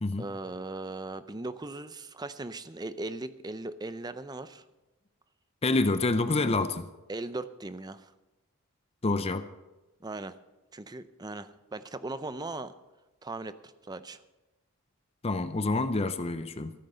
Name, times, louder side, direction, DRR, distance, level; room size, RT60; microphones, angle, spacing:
voice 1, 0.2-4.6 7.1-8.1 10.0-10.3 10.7-12.7 13.2-14.2, right 2 dB, 20° right, 13 dB, 0.5 m, -38 dB
voice 2, 5.6-6.9 9.0-9.5 15.2-16.7, left 3 dB, 25° left, 11 dB, 0.6 m, -27 dB
14.5 x 9.1 x 6.7 m, 1.1 s
head